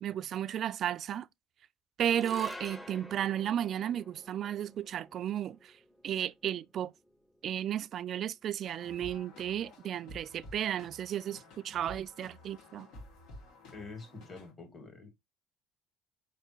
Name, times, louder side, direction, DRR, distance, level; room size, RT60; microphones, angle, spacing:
voice 1, 0.0-1.3 2.0-5.8 6.0-6.9 7.4-12.9, right 10 dB, 50° right, 0.3 m, -34 dB
sound 1, 2.1-8.5, equal, 5° left, 0.8 m, -50 dB
sound 2, 8.6-14.5, left 1 dB, 75° left, 2.1 m, -52 dB
voice 2, 13.7-15.1, left 3 dB, 25° left, 2.1 m, -46 dB
4.8 x 3.4 x 3.0 m
cardioid pair, 110°, 0 cm